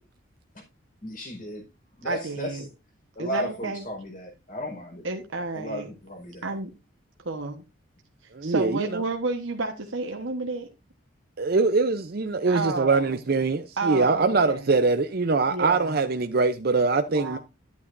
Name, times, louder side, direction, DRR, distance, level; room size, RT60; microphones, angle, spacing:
voice 1, 1.0-1.6 2.0-2.6 3.1-5.0 5.5-6.5, equal, 40° left, 4.7 m, -34 dB
voice 2, 2.0-2.7 3.2-3.8 5.0-5.9 6.4-6.7 7.2-7.6 8.4-10.7 12.5-13.2 13.8-14.7 15.5-16.0 17.1-17.4, right 3 dB, 70° right, 1.2 m, -31 dB
voice 3, 8.3-8.9 11.4-17.4, right 3 dB, 45° right, 0.6 m, -23 dB
11.5 x 8.6 x 2.6 m
head